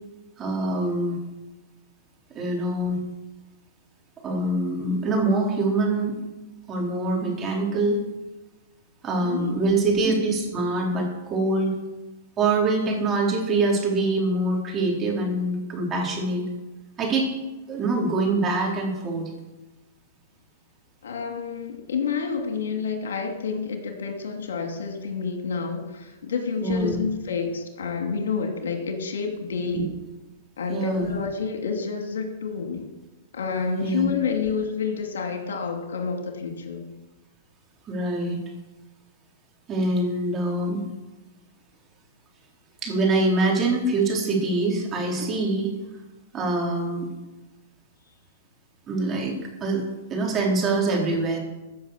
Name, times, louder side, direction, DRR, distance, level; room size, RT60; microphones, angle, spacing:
voice 1, 0.4-1.2 2.3-3.0 4.2-6.2 6.7-8.0 9.0-11.7 12.4-16.4 17.0-17.3 17.7-19.3 26.6-27.0 29.7-29.8 30.7-31.1 33.8-34.1 37.9-38.4 39.7-40.8 42.8-45.7 46.3-47.1 48.9-49.4 49.6-49.8 50.1-51.4, right 2 dB, 25° right, -1 dB, 4.2 m, -24 dB
voice 2, 9.2-9.8 21.0-29.9 30.6-32.9 33.3-36.9, left 5 dB, 80° left, 5 dB, 2.3 m, -29 dB
15.0 x 6.5 x 6.8 m, 1.1 s
hypercardioid pair, 125°, 0 cm